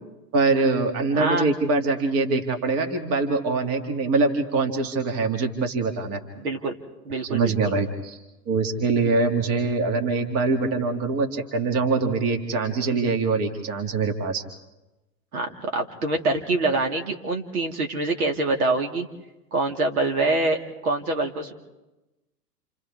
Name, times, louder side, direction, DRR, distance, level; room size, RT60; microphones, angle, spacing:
voice 1, 0.3-6.2 7.2-8.2 8.5-14.4, right 3 dB, 30° right, 5 dB, 2.2 m, -23 dB
voice 2, 1.1-1.5 6.4-6.8 7.0-7.7 15.3-19.1 19.5-21.5, right 2 dB, 60° right, 2 dB, 2.4 m, -25 dB
29.0 x 28.5 x 3.6 m, 1.0 s
figure-of-eight pair, 100°, 49 cm